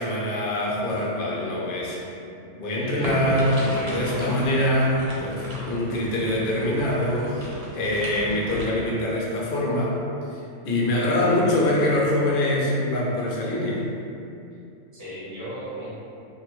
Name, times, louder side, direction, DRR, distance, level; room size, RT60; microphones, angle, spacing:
voice 1, 0.0-2.1 2.5-7.5 7.7-10.0 10.3-13.8, left 1 dB, 70° left, -5 dB, 0.5 m, -24 dB
voice 2, 2.8-4.0 11.0-11.8 14.9-15.9, equal, 20° right, -11 dB, 0.6 m, -37 dB
sound 1, 3.0-8.7, equal, 70° right, 0.9 m, -34 dB
2.4 x 2.2 x 2.9 m, 2.6 s
omnidirectional pair, 1.5 m